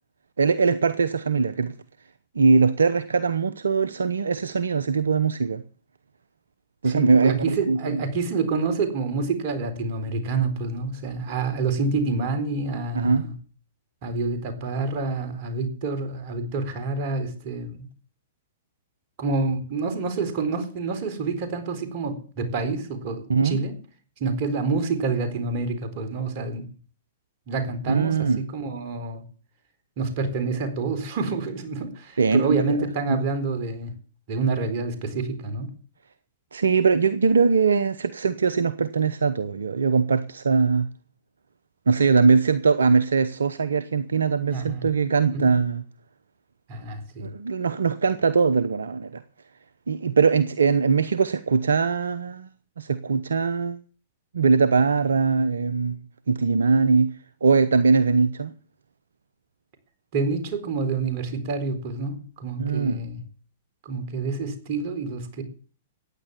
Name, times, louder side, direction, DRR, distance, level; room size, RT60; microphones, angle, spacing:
voice 1, 0.4-1.7 2.3-5.6 6.8-8.0 12.9-13.3 23.3-23.6 27.9-28.4 32.2-32.8 33.1-33.2 36.5-40.9 41.9-45.8 47.2-49.2 49.9-52.5 52.8-53.8 54.3-56.0 56.3-58.5 62.6-63.0, right 5 dB, 70° right, 0.8 m, -21 dB
voice 2, 6.8-13.3 14.0-17.9 19.2-23.7 24.2-26.7 27.5-29.2 30.0-33.9 34.3-35.7 44.5-44.9 45.3-45.5 46.7-47.3 60.1-63.2 63.8-65.4, right 4 dB, 45° right, 4.2 m, -28 dB
15.0 x 10.0 x 7.2 m
figure-of-eight pair, 105°, 0 cm